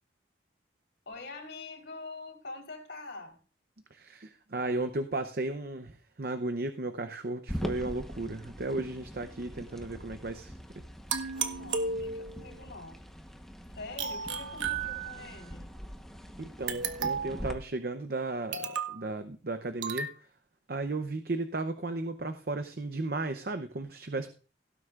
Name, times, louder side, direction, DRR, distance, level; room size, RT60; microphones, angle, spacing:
voice 1, 1.1-3.4 11.3-13.0 13.7-15.7, left 3 dB, 70° left, 3 dB, 4.2 m, -45 dB
voice 2, 3.9-10.5 16.6-20.1 20.7-24.4, right 2 dB, 55° right, 8 dB, 0.7 m, -35 dB
sound 1, 7.5-17.5, equal, ahead, 1.1 m, -42 dB
sound 2, 11.1-12.5 14.0-15.4 16.7-17.4 18.5-19.0 19.8-20.2, right 5 dB, 85° right, 1.2 m, -33 dB
17.0 x 9.8 x 2.5 m, 0.37 s
head